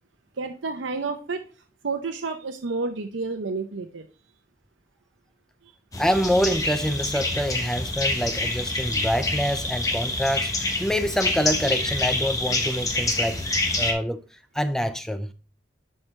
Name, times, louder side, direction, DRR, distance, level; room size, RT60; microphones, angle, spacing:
voice 1, 0.4-1.4 1.8-4.1, right 4 dB, 85° right, 0.7 m, -30 dB
sound 1, 5.9-13.9, left 2 dB, 20° left, 1.1 m, -27 dB
voice 2, 6.0-13.4 13.8-15.3, equal, 5° left, 0.3 m, -26 dB
10.5 x 4.4 x 3.2 m
head